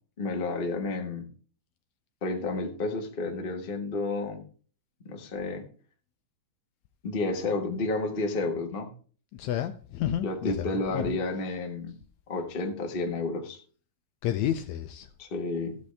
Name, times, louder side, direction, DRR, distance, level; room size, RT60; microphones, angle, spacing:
voice 1, 0.2-1.3 2.2-4.4 5.0-5.6 7.0-8.9 10.2-11.9 12.3-13.6 15.2-15.8, left 3 dB, 40° left, 0.7 m, -31 dB
voice 2, 9.4-11.2 14.2-15.1, left 11 dB, 80° left, 1.7 m, -30 dB
14.0 x 7.9 x 3.4 m
omnidirectional pair, 3.7 m